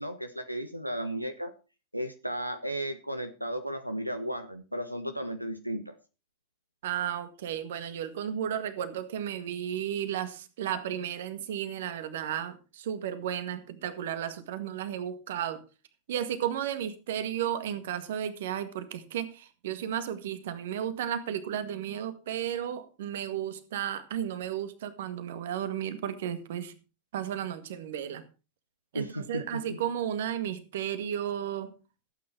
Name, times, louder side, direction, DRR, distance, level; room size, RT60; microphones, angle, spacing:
voice 1, 0.0-1.5 1.9-6.0 28.9-29.8, right 1 dB, 90° right, 10 dB, 1.0 m, -34 dB
voice 2, 6.8-15.6 16.1-26.7 27.1-28.2 28.9-31.7, right 10 dB, 55° right, 12 dB, 1.8 m, -33 dB
16.5 x 9.0 x 4.5 m, 0.32 s
figure-of-eight pair, 90°, 0 cm